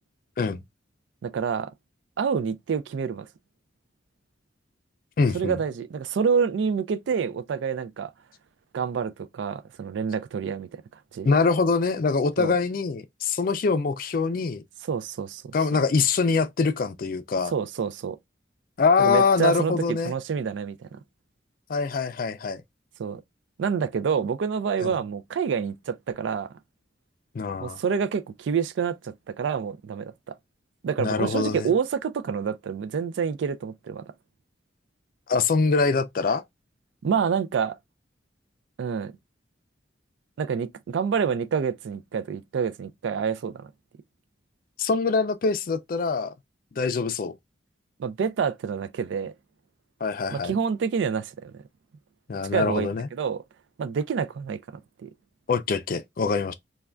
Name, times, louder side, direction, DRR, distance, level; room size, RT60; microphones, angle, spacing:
voice 1, 1.2-1.7 2.2-3.3 5.3-8.1 8.7-10.8 11.1-11.3 12.4-12.5 14.9-15.4 17.5-18.2 19.0-21.0 23.0-23.2 23.6-26.5 27.6-30.3 30.8-34.1 37.0-37.8 38.8-39.1 40.4-43.7 48.0-49.3 50.3-51.6 52.5-53.4 53.8-54.6 55.0-55.1, right 6 dB, 75° right, 0.3 m, -27 dB
voice 2, 5.2-5.6 11.2-14.6 15.5-17.5 18.8-20.1 21.7-22.6 24.8-24.9 27.3-27.8 31.0-31.7 35.3-36.4 44.8-46.3 46.8-47.3 50.0-50.5 52.3-53.1 55.5-56.5, left 4 dB, 50° left, 0.4 m, -24 dB
3.3 x 2.2 x 2.3 m
head